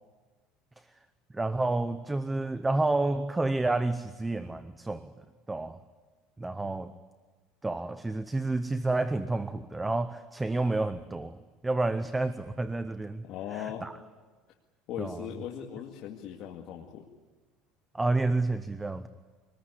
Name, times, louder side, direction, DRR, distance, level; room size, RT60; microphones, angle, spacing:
voice 1, 1.3-5.1 5.5-5.8 6.4-6.9 7.6-11.4 11.6-13.3 13.5-13.9 15.0-15.2 17.9-19.1, right 2 dB, 10° right, 11 dB, 0.7 m, -29 dB
voice 2, 13.2-13.8 14.9-17.1, left 10 dB, 50° left, -1 dB, 2.2 m, -38 dB
25.0 x 20.0 x 9.8 m, 1.3 s
cardioid pair, 165°, 0 cm